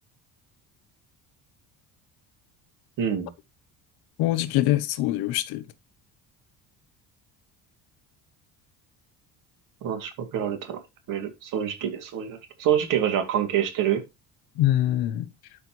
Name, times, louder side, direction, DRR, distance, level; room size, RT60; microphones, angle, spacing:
voice 1, 3.0-3.3 9.8-10.8 11.1-14.0, right 9 dB, 55° right, 2.5 m, -26 dB
voice 2, 4.2-5.7 14.5-15.3, left 14 dB, 85° left, 1.0 m, -24 dB
12.5 x 5.5 x 3.0 m
cardioid pair, 170°, 37 cm